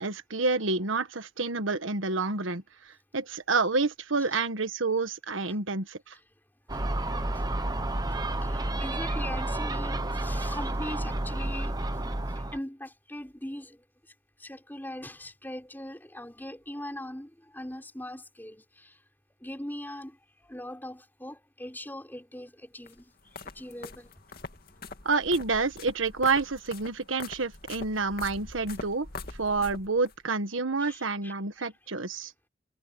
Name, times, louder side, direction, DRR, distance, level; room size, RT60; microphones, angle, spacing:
voice 1, 0.0-2.6 3.1-6.1 25.0-29.1 29.4-32.3, right 3 dB, 80° right, 1.5 m, -28 dB
Gull seagull, 6.7-12.6, right 1 dB, 20° right, 1.0 m, -30 dB
voice 2, 8.4-11.8 12.3-13.8 14.4-19.0 19.4-20.2 20.4-23.0 23.3-24.1 30.8-31.7, left 1 dB, 10° left, 5.6 m, -41 dB
sound 1, 22.9-30.2, left 3 dB, 50° left, 2.3 m, -43 dB
head